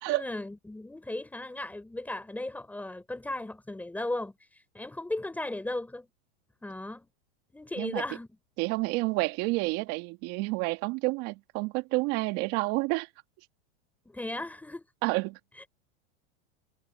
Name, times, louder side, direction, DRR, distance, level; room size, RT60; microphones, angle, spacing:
voice 1, 0.1-4.3 4.7-6.1 6.6-7.1 7.5-8.3 14.1-14.8 15.6-15.7, left 2 dB, 5° left, 4.2 m, -36 dB
voice 2, 8.6-13.1 15.0-15.4, right 24 dB, 50° right, 2.8 m, -29 dB
supercardioid pair, 145°, 31 cm